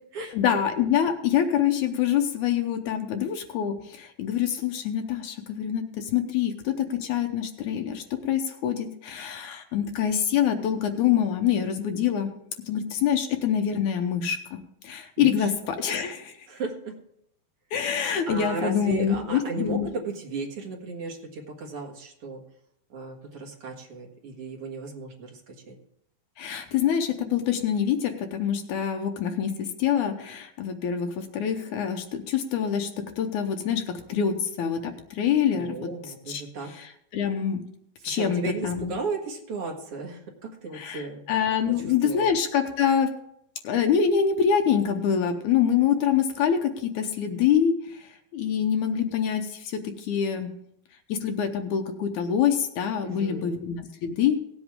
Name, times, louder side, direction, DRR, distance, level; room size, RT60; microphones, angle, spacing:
voice 1, 0.3-12.3 12.7-14.6 14.8-16.4 17.7-19.9 26.4-32.9 33.2-35.9 36.3-36.4 36.7-37.6 38.0-38.9 40.7-43.1 43.6-50.5 51.1-54.4, left 8 dB, 70° left, 5 dB, 2.0 m, -25 dB
voice 2, 15.2-15.5 16.5-16.9 18.3-22.4 22.9-25.8 35.5-36.7 38.0-41.3 41.8-42.3 53.0-53.6, right 3 dB, 50° right, 1 dB, 2.2 m, -35 dB
17.5 x 8.1 x 3.6 m, 0.72 s
omnidirectional pair, 4.2 m